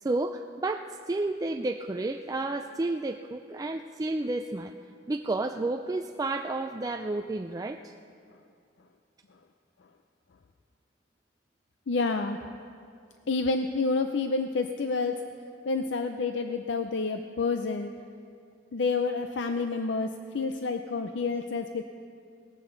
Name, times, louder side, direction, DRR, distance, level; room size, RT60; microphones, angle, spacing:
voice 1, 0.0-4.7 5.1-7.9, right 2 dB, 20° right, 5 dB, 0.3 m, -31 dB
voice 2, 11.9-12.4 13.3-15.2 15.7-17.9 18.7-20.1 20.3-21.8, left 4 dB, 65° left, 7 dB, 0.5 m, -28 dB
18.5 x 15.0 x 3.9 m, 2.4 s
head